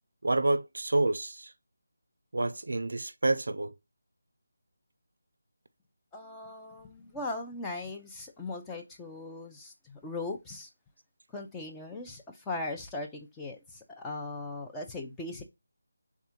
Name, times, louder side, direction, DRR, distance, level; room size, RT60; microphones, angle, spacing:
voice 1, 0.2-1.5 2.3-3.7, right 2 dB, 70° right, 0.5 m, -28 dB
voice 2, 6.1-10.7 11.3-15.4, left 2 dB, 10° left, 0.5 m, -39 dB
3.5 x 2.3 x 4.3 m
figure-of-eight pair, 165°, 0 cm